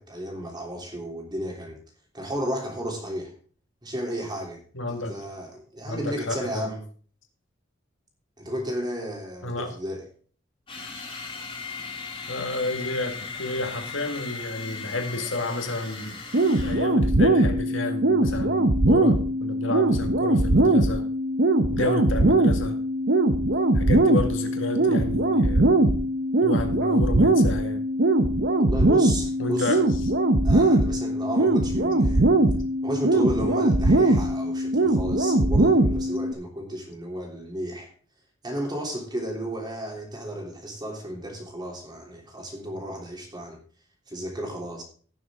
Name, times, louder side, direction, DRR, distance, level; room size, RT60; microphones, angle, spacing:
voice 1, 0.0-1.8 2.1-3.3 3.8-4.6 5.1-6.8 8.4-10.0 28.6-29.8 30.4-32.2 32.8-37.9 38.4-43.6 44.1-44.8, equal, 20° right, 0 dB, 3.3 m, -33 dB
voice 2, 4.7-5.1 5.9-6.7 9.4-9.7 12.3-16.2 16.6-21.1 21.7-22.8 23.7-25.8 26.4-27.8 29.4-29.8, left 2 dB, 80° left, 5 dB, 2.0 m, -31 dB
sound 1, 10.7-16.9, left 5 dB, 25° left, 2.7 m, -37 dB
sound 2, 16.3-36.3, right 1 dB, 55° right, 0.9 m, -21 dB
17.0 x 6.9 x 3.7 m, 0.43 s
head